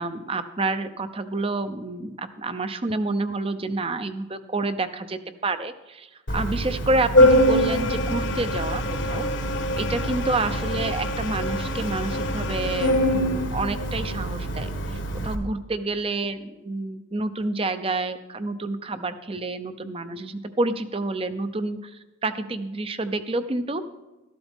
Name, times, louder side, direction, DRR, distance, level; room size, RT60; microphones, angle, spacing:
voice 1, 0.0-9.3 9.7-23.8, right 2 dB, 30° right, 11 dB, 0.6 m, -29 dB
Organ, 6.3-15.3, equal, 65° left, 1.4 m, -24 dB
13.5 x 12.0 x 3.6 m, 1.1 s
head